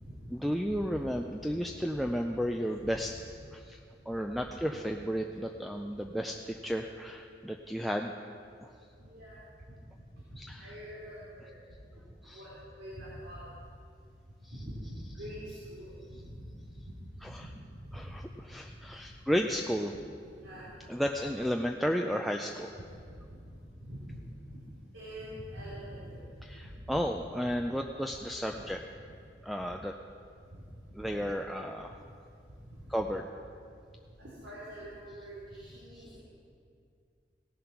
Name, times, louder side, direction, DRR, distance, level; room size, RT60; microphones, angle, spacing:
voice 1, 0.3-3.1 3.5-3.8 4.1-8.1 8.6-8.7 10.4-10.7 12.2-12.4 14.4-14.5 17.2-17.4 17.9-19.9 20.9-22.7 26.4-28.8 29.4-29.9 31.0-31.9 32.9-33.3 35.9-36.0, equal, ahead, 1 dB, 0.3 m, -33 dB
voice 2, 9.0-9.4 10.3-11.6 12.3-13.4 14.5-16.5 17.2-17.5 17.8-18.1 20.4-20.7 23.2-23.4 23.8-24.2 24.9-26.3 26.9-27.0 28.6-28.7 32.7-32.8 34.2-36.2, equal, 80° right, -8 dB, 3.0 m, -44 dB
17.0 x 7.4 x 5.8 m, 2.3 s
head